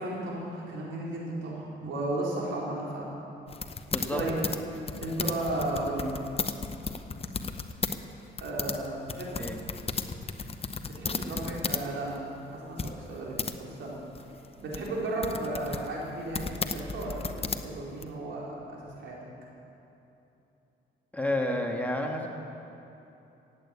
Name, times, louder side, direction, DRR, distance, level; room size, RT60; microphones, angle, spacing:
voice 1, 0.0-3.1 4.1-4.4 5.0-6.1 8.4-9.4 10.9-13.9 14.6-19.2, right 2 dB, 70° right, -4 dB, 4.3 m, -34 dB
sound 1, 3.5-8.0 8.2-11.9 12.1-12.2 12.8-13.5 14.1-18.0, left 4 dB, 30° left, 0.8 m, -34 dB
voice 2, 3.9-4.2 9.4-9.6 21.1-22.3, left 1 dB, 5° left, 1 dB, 1.5 m, -30 dB
15.5 x 8.9 x 8.4 m, 2.9 s
cardioid pair, 90°, 20 cm